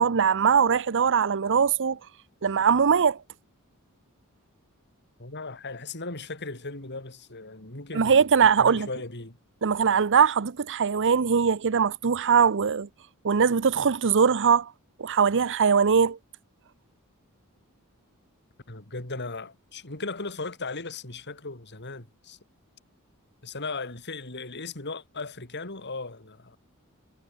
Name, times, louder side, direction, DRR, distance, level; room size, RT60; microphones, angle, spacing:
voice 1, 0.0-2.0 2.4-3.2 7.9-8.9 9.6-12.9 13.2-14.7 15.0-16.2, right 6 dB, 55° right, 0.7 m, -21 dB
voice 2, 5.2-8.2 8.6-9.4 18.7-22.4 23.4-26.6, left 3 dB, 50° left, 4.8 m, -37 dB
head